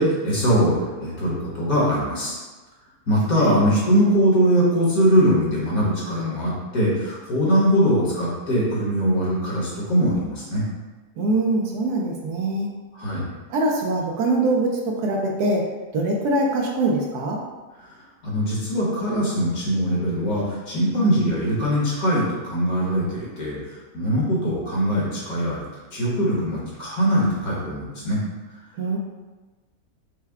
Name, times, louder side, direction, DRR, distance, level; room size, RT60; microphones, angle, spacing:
voice 1, 0.0-2.4 3.1-10.6 13.0-13.3 18.2-25.6 25.9-28.2, equal, 60° left, -6 dB, 1.7 m, -21 dB
voice 2, 11.2-12.7 13.5-15.6 15.9-17.4 28.8-29.0, right 2 dB, 75° right, 0 dB, 1.2 m, -23 dB
5.7 x 2.2 x 3.5 m, 1.2 s
omnidirectional pair, 1.7 m